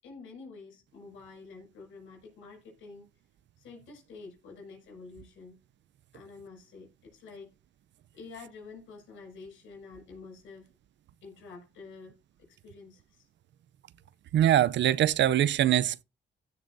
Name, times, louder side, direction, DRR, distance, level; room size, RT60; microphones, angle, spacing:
voice 1, 0.0-3.1 3.6-5.6 6.1-7.5 8.1-10.7 11.2-13.3, left 4 dB, 85° left, 6.2 m, -48 dB
voice 2, 14.3-16.0, right 12 dB, 65° right, 0.6 m, -23 dB
15.5 x 6.2 x 2.7 m
cardioid pair, 90°, 20 cm